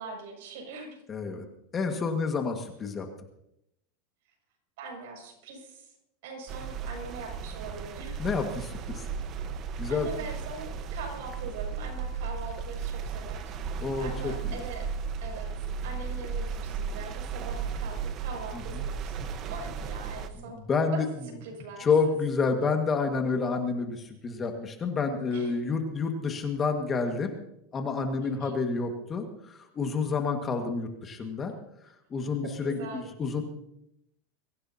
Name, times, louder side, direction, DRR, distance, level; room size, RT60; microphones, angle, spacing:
voice 1, 0.0-1.0 4.8-5.9 6.2-8.2 9.9-13.5 14.0-14.9 15.2-20.6 20.9-21.0 21.4-22.1 25.3-25.8 28.2-28.6 32.6-33.1, right 4 dB, 70° right, 0 dB, 6.9 m, -42 dB
voice 2, 1.1-1.4 1.7-3.1 8.2-9.0 9.8-10.1 13.8-14.6 20.5-21.1 21.8-27.4 27.7-31.5 32.1-33.4, left 4 dB, 25° left, 4 dB, 1.8 m, -29 dB
sound 1, 6.5-20.3, right 6 dB, 35° right, 1.2 m, -35 dB
23.5 x 15.5 x 2.9 m, 0.79 s
supercardioid pair, 140°, 0 cm